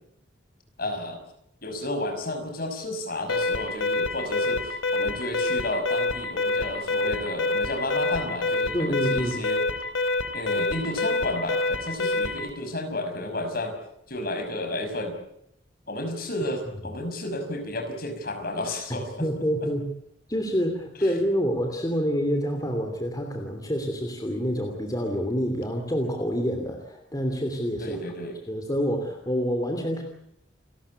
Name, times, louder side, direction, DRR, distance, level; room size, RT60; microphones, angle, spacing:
voice 1, 0.8-1.2 1.6-9.6 10.3-13.8 14.1-15.2 15.9-19.3 19.6-19.7 21.0-21.1 27.8-28.4, left 1 dB, 50° left, 6 dB, 5.8 m, -32 dB
Alarm, 3.3-12.5, left 2 dB, 85° left, 3.3 m, -27 dB
voice 2, 8.7-9.4 18.9-19.9 20.3-28.0 28.5-30.0, equal, 20° left, 4 dB, 2.9 m, -27 dB
29.5 x 13.5 x 9.7 m, 0.75 s
head